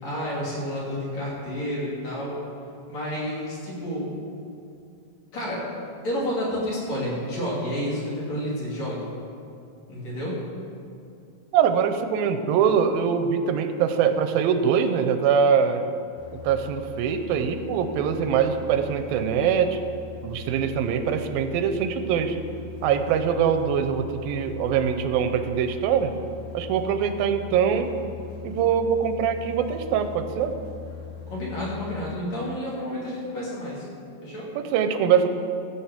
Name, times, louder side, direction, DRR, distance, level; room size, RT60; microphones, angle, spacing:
voice 1, 0.0-2.4 2.9-4.1 5.3-5.7 6.0-9.1 9.9-10.4 31.3-33.9 34.2-34.5, equal, 50° left, -6 dB, 4.0 m, -30 dB
voice 2, 11.5-15.9 16.3-19.8 20.2-22.4 22.8-26.1 26.5-27.9 28.4-30.6 34.6-35.3, right 7 dB, 90° right, 8 dB, 2.6 m, -23 dB
sound 1, 16.2-32.2, left 6 dB, 80° left, 1.3 m, -41 dB
15.0 x 6.1 x 7.3 m, 2.6 s
omnidirectional pair, 4.0 m